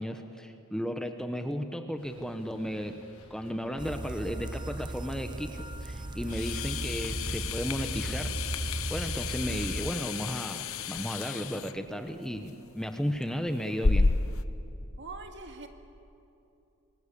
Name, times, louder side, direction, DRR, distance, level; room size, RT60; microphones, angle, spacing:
voice 1, 0.0-3.0 3.3-8.3 8.6-14.1, equal, 5° left, 6 dB, 1.0 m, -34 dB
sound 1, 2.0-8.5, left 1 dB, 85° left, 7.6 m, -55 dB
sound 2, 3.8-9.9, right 2 dB, 20° right, 0.6 m, -36 dB
sound 3, 6.2-14.4, left 4 dB, 65° left, 0.9 m, -32 dB
voice 2, 15.0-15.7, right 3 dB, 55° right, 5 dB, 2.0 m, -43 dB
27.0 x 21.0 x 8.5 m, 2.8 s
head